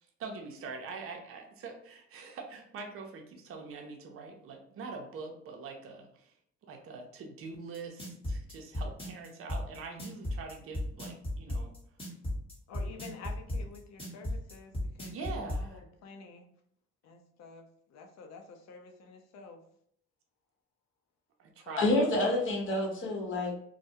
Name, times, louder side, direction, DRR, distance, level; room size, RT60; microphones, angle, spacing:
voice 1, 0.2-6.3 6.6-11.7 15.1-15.8 21.4-21.9, right 4 dB, 50° right, 2 dB, 0.5 m, -44 dB
sound 1, 7.7-15.6, left 1 dB, 20° left, 1.0 m, -34 dB
voice 2, 12.7-16.4 17.0-17.6 17.9-19.6 21.7-22.3, left 4 dB, 65° left, 4 dB, 0.6 m, -49 dB
voice 3, 21.8-23.6, left 2 dB, 45° left, -1 dB, 0.9 m, -28 dB
2.2 x 2.1 x 2.7 m, 0.69 s
supercardioid pair, 70°, 29 cm